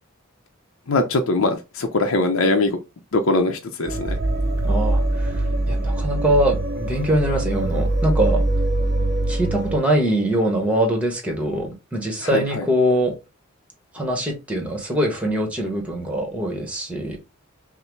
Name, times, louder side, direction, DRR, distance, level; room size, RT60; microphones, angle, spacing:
voice 1, 0.9-2.8 3.1-4.2 12.2-12.7, left 2 dB, 75° left, 0.6 m, -21 dB
sound 1, 3.9-9.8, right 1 dB, 50° right, 0.7 m, -23 dB
voice 2, 4.6-5.3 5.7-8.4 9.3-13.1 13.9-17.2, right 1 dB, 5° right, 1.0 m, -22 dB
5.6 x 2.1 x 3.1 m
head